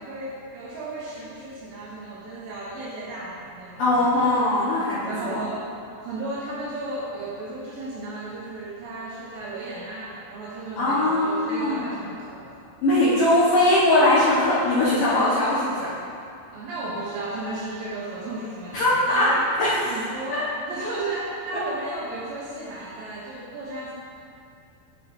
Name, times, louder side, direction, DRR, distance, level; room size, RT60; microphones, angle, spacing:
voice 1, 0.0-4.5 5.1-5.7 6.0-12.6 15.1-15.3 16.5-19.5 19.9-23.9, right 2 dB, 75° right, -6 dB, 2.7 m, -34 dB
voice 2, 3.8-5.4 10.8-12.0 12.8-15.9 18.7-19.3 19.6-20.0 20.3-20.4, left 1 dB, 70° left, -12 dB, 2.1 m, -21 dB
12.0 x 6.4 x 2.7 m, 2.5 s
omnidirectional pair, 5.9 m